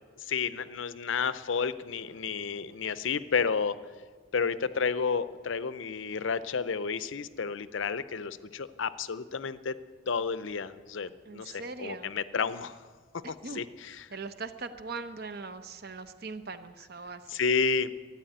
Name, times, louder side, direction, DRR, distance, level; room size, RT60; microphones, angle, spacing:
voice 1, 0.2-3.8 4.3-9.7 10.1-12.8 13.3-14.1 17.3-17.9, left 5 dB, 70° left, 14 dB, 0.6 m, -31 dB
voice 2, 11.3-12.1 13.4-13.6 14.1-17.4, right 4 dB, 50° right, 10 dB, 0.8 m, -40 dB
13.0 x 9.8 x 9.2 m, 1.5 s
head